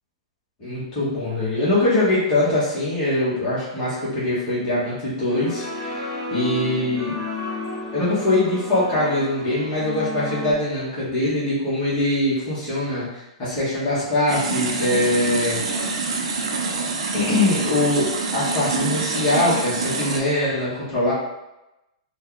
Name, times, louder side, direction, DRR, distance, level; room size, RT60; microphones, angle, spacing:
voice 1, 0.6-7.1 7.9-15.6 16.0-16.1 17.1-21.1, left 1 dB, 20° left, -9 dB, 1.2 m, -23 dB
sound 1, 5.3-10.5, left 2 dB, ahead, 1.3 m, -31 dB
sound 2, 14.3-20.2, right 4 dB, 70° right, 0.6 m, -26 dB
3.1 x 2.3 x 3.7 m, 0.94 s
hypercardioid pair, 175°, 3 cm